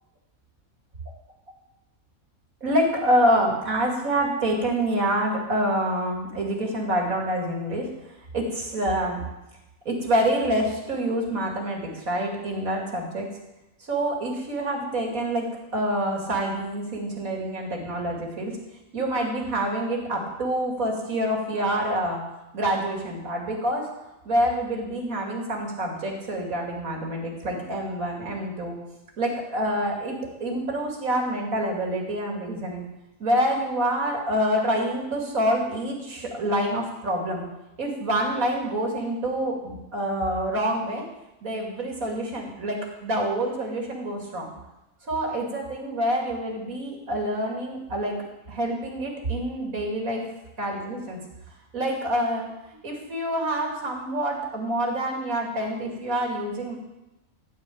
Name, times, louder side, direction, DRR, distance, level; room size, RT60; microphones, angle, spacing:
voice 1, 2.6-7.9 8.3-9.2 9.8-13.3 13.8-18.5 18.9-22.2 22.5-23.9 24.2-28.8 29.2-32.8 33.2-37.4 37.8-41.0 41.4-44.5 45.1-48.1 48.5-50.2 50.6-51.2 51.7-56.8, right 1 dB, 75° right, 0 dB, 2.9 m, -27 dB
14.0 x 4.7 x 8.5 m, 0.96 s
omnidirectional pair, 1.5 m